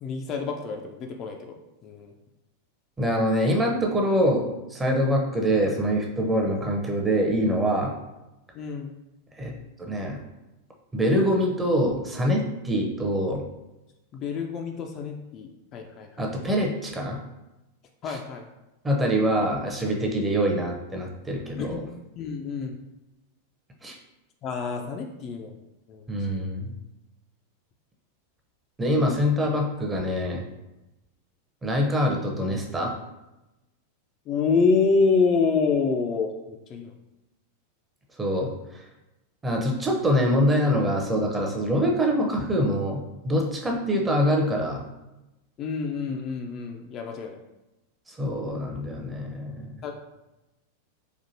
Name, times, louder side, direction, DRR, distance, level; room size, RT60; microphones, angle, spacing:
voice 1, 0.0-1.6 1.8-2.1 8.5-8.9 14.1-16.3 18.0-18.5 21.6-21.8 22.2-22.8 24.4-25.5 25.9-26.0 34.3-36.9 45.6-47.4 49.8-49.9, left 4 dB, 35° left, 3 dB, 0.3 m, -27 dB
voice 2, 3.0-7.9 9.4-9.5 9.8-10.2 10.9-13.4 16.2-17.2 18.1-18.2 18.8-21.8 23.8-24.0 26.1-26.7 28.8-30.4 31.6-32.9 38.2-38.5 39.4-44.8 48.2-49.7, equal, 15° right, 0 dB, 0.6 m, -24 dB
4.2 x 2.5 x 2.7 m, 0.98 s
figure-of-eight pair, 90°, 0 cm